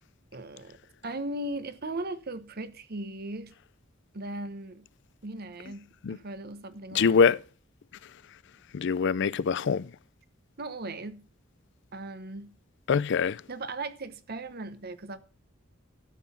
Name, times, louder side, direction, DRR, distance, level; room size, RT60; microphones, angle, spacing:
voice 1, 0.3-0.8 1.0-3.5 4.1-4.9 5.2-7.3 10.6-11.2 11.9-12.6 13.5-15.2, right 2 dB, 50° right, 1.0 m, -38 dB
voice 2, 6.9-7.4 8.7-9.9 12.9-13.4, left 5 dB, 60° left, 0.4 m, -24 dB
13.0 x 6.2 x 5.7 m
head